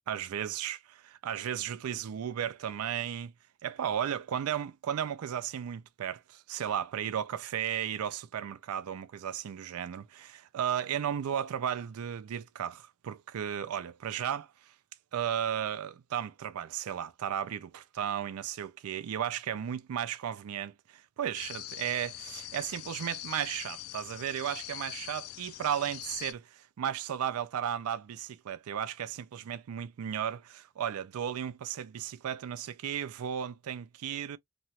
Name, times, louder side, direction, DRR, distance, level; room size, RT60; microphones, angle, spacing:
voice 1, 0.1-3.3 3.6-14.7 15.1-34.4, right 9 dB, 85° right, 0.4 m, -35 dB
sound 1, 21.3-26.3, left 14 dB, 85° left, 0.4 m, -43 dB
3.0 x 2.3 x 2.8 m
head